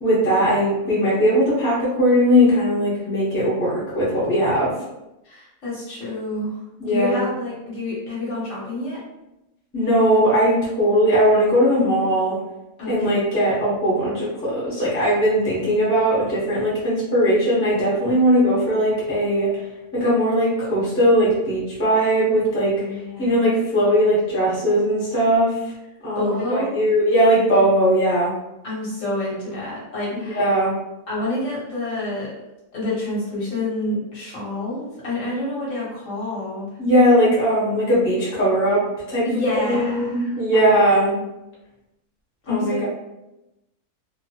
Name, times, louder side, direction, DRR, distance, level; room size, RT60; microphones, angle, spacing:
voice 1, 0.0-4.7 6.8-7.3 9.7-12.4 12.9-19.5 19.9-22.7 23.2-25.5 26.0-28.3 30.1-30.7 36.8-38.8 39.1-41.2 42.5-42.9, equal, 10° left, -8 dB, 0.6 m, -19 dB
voice 2, 5.2-6.6 6.9-9.0 12.8-13.1 22.8-23.5 26.2-26.7 28.6-30.5 31.1-32.3 32.7-36.7 39.2-40.8 42.4-42.9, left 2 dB, 60° left, -6 dB, 1.3 m, -28 dB
2.8 x 2.0 x 2.8 m, 0.94 s
omnidirectional pair, 1.6 m